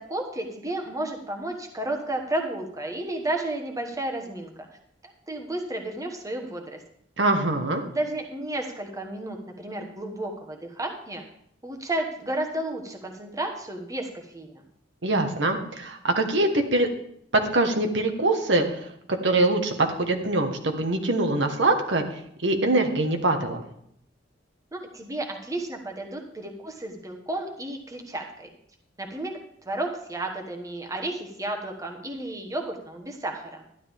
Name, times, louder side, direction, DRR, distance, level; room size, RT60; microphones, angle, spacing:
voice 1, 0.0-4.7 5.0-6.8 7.9-11.2 11.6-14.6 24.7-28.5 29.0-29.4 29.6-33.6, right 1 dB, 20° right, 2 dB, 1.2 m, -32 dB
voice 2, 7.2-7.8 15.0-16.9 17.3-18.9 19.2-22.0 22.4-23.6, right 2 dB, 70° right, 4 dB, 1.3 m, -23 dB
12.5 x 11.0 x 3.6 m, 0.71 s
head